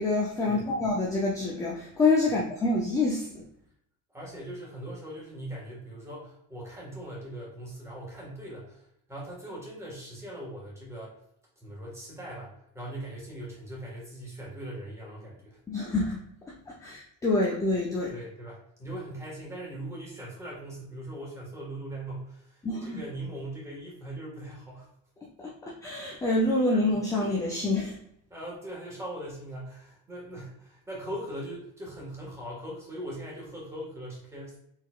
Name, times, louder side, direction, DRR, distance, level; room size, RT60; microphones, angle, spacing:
voice 1, 0.0-3.4 15.7-16.2 16.7-18.1 22.6-23.0 25.4-28.0, left 2 dB, 10° left, -3 dB, 0.4 m, -27 dB
voice 2, 4.1-8.8 9.1-11.2 11.6-15.6 18.1-24.9 28.3-34.6, right 1 dB, 10° right, -4 dB, 1.5 m, -40 dB
4.3 x 3.7 x 2.3 m, 0.75 s
cardioid pair, 150°, 35 cm